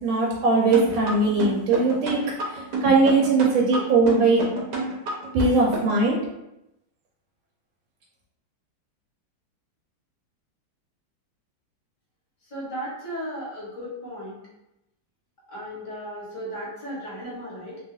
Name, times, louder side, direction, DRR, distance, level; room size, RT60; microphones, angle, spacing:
voice 1, 0.0-2.2 2.5-4.4 5.3-6.2, right 3 dB, 85° right, -2 dB, 1.4 m, -20 dB
sound 1, 0.7-6.1, right 3 dB, 70° right, 1.2 m, -29 dB
voice 2, 12.5-14.4 15.5-17.8, equal, 30° left, -8 dB, 0.9 m, -35 dB
3.3 x 2.3 x 2.6 m, 0.88 s
omnidirectional pair, 2.1 m